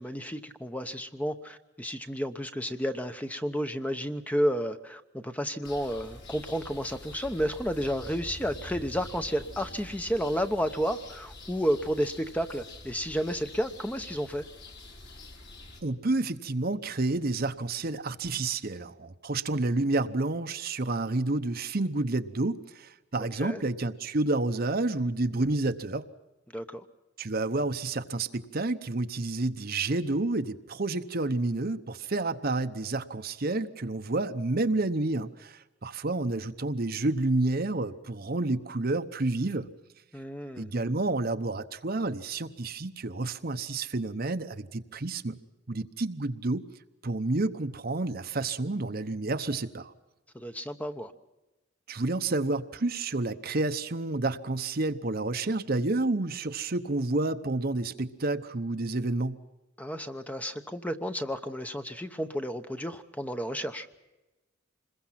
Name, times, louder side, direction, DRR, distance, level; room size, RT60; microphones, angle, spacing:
voice 1, 0.0-14.4 23.4-23.6 26.5-26.8 40.1-40.7 50.3-51.1 59.8-63.9, equal, 5° left, 8 dB, 0.9 m, -31 dB
sound 1, 5.6-15.8, left 2 dB, 55° left, 3.8 m, -46 dB
voice 2, 15.8-26.0 27.2-39.7 40.6-45.4 45.7-46.7 47.0-49.9 51.9-59.4, right 2 dB, 45° right, 9 dB, 0.9 m, -29 dB
27.0 x 21.5 x 5.8 m, 1.0 s
head